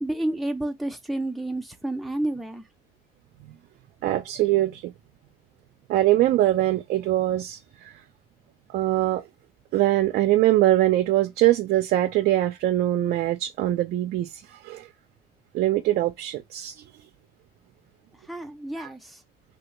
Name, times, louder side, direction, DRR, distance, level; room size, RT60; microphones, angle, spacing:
voice 1, 0.0-2.7 18.3-19.2, right 1 dB, ahead, 0.6 m, -30 dB
voice 2, 4.0-4.9 5.9-7.9 8.7-9.2 9.7-14.9 15.5-16.8 18.8-18.9, right 14 dB, 70° right, 0.5 m, -23 dB
3.0 x 2.4 x 2.9 m
cardioid pair, 110°, 17 cm